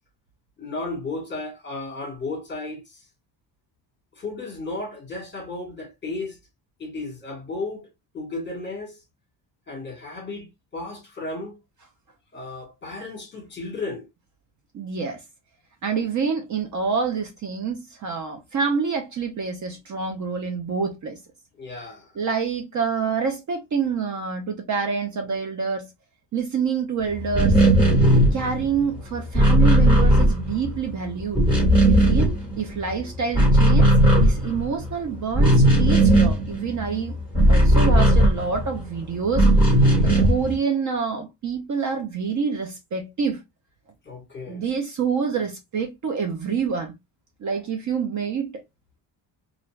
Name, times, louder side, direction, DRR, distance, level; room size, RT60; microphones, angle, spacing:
voice 1, 0.6-3.0 4.2-6.4 6.8-7.9 8.1-9.0 9.7-11.6 12.3-14.1 21.6-22.1 32.9-33.1 39.8-40.3 44.0-44.6, left 3 dB, 25° left, 1.1 m, -34 dB
voice 2, 14.7-15.2 15.8-21.2 22.1-25.9 26.3-27.6 28.3-31.5 31.9-37.2 37.5-39.5 39.9-43.4 44.5-46.9 47.4-48.6, right 5 dB, 45° right, 0.5 m, -27 dB
sound 1, 27.2-30.9 31.2-32.9 33.2-38.8 39.3-40.5, right 1 dB, 10° right, 1.1 m, -17 dB
2.5 x 2.2 x 3.0 m
cardioid pair, 175°, 43 cm